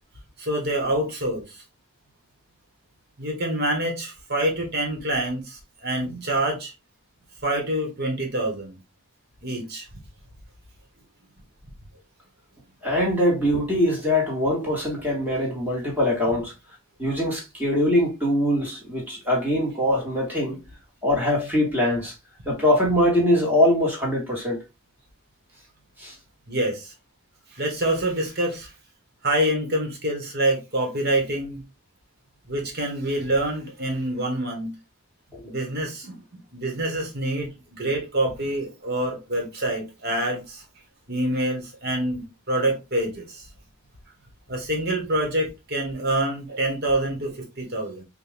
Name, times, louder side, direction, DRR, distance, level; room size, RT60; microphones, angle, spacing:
voice 1, 0.4-1.6 3.2-6.7 7.4-8.8 9.4-9.9 26.5-26.9 27.5-28.7 29.2-31.6 32.5-34.7 35.4-36.2 36.5-40.6 41.1-43.5 44.5-48.0, right 1 dB, 45° right, 1.4 m, -26 dB
voice 2, 12.8-16.5 17.0-20.6 21.0-22.1 22.4-24.6 26.0-26.1 35.3-35.4, left 1 dB, 10° right, 1.6 m, -22 dB
4.5 x 2.6 x 3.4 m
head